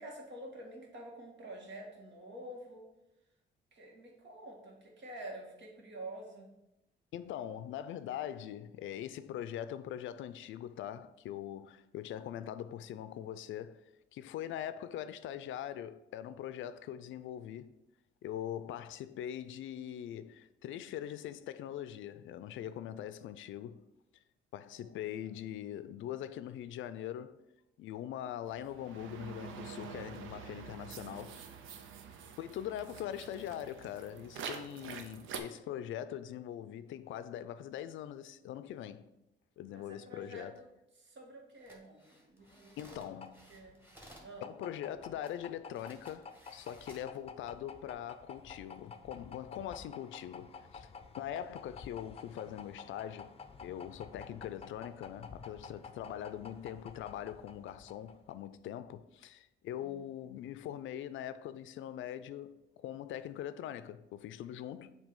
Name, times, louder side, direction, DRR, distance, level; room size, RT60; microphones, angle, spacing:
voice 1, 0.0-2.8 3.7-6.5 24.7-25.3 39.7-40.7 41.0-43.1 43.5-43.8 44.2-44.5 59.8-60.1, right 1 dB, 65° right, 1.8 m, -48 dB
voice 2, 7.1-13.8 14.1-17.7 18.2-23.8 24.1-24.2 24.5-27.4 27.8-31.4 32.4-39.1 39.6-40.6 42.8-43.4 44.4-50.9 51.2-53.3 53.6-64.9, left 11 dB, 75° left, 0.4 m, -42 dB
sound 1, 28.5-35.4, right 6 dB, 90° right, 0.6 m, -46 dB
sound 2, 41.5-44.3 45.3-45.4 45.7-47.2 47.7-47.9, equal, 10° right, 1.7 m, -58 dB
sound 3, 42.4-58.5, left 5 dB, 30° left, 0.5 m, -51 dB
7.3 x 2.9 x 5.3 m
cardioid pair, 90°, 20 cm